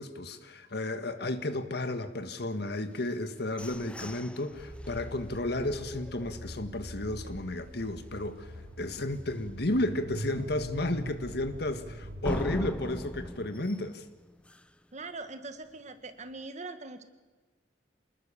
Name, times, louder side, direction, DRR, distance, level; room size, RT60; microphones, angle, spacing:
voice 1, 0.0-8.5 8.8-14.1, left 1 dB, 65° left, 9 dB, 1.7 m, -33 dB
sound 1, 3.0-6.8 7.3-7.4 7.8-8.2 8.6-8.7 9.1-9.2 12.2-14.9, left 1 dB, 5° left, 0.6 m, -41 dB
sound 2, 4.5-13.3, equal, 60° right, 8.0 m, -43 dB
voice 2, 14.9-17.0, right 3 dB, 40° right, 8 dB, 1.8 m, -42 dB
27.0 x 20.0 x 7.1 m, 1.3 s
head